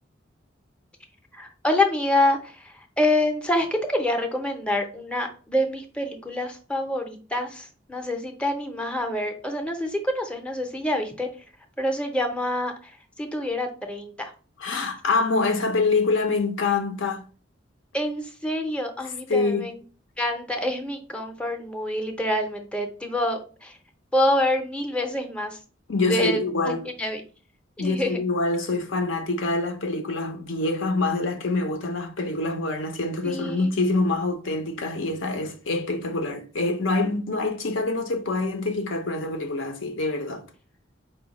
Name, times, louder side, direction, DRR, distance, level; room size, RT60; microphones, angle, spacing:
voice 1, 1.3-11.3 11.8-14.3 17.9-19.8 20.2-23.8 24.1-25.6 26.1-26.4 26.6-26.7 27.0-27.2 27.8-28.2 33.2-33.7, left 1 dB, 5° left, 0.6 m, -26 dB
voice 2, 14.6-17.2 19.3-19.7 25.9-26.9 27.8-40.4, left 3 dB, 75° left, 0.6 m, -25 dB
4.8 x 2.2 x 3.9 m
head